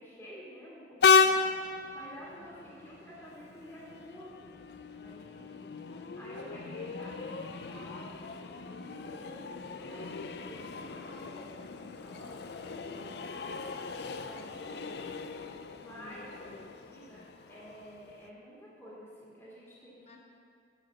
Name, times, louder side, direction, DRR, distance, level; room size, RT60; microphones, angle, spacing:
voice 1, 0.0-1.4 1.7-5.5 6.2-8.2 8.6-13.1 13.8-15.1 15.7-16.3 16.6-17.2 17.5-20.2, equal, 10° left, -8 dB, 1.9 m, -50 dB
Train, 1.0-18.3, left 5 dB, 60° left, 0.4 m, -34 dB
voice 2, 2.3-2.7 5.3-5.9 12.7-13.2 15.9-17.3 20.1-20.2, left 1 dB, 35° left, 1 dB, 0.9 m, -56 dB
9.9 x 5.0 x 7.4 m, 2.5 s
head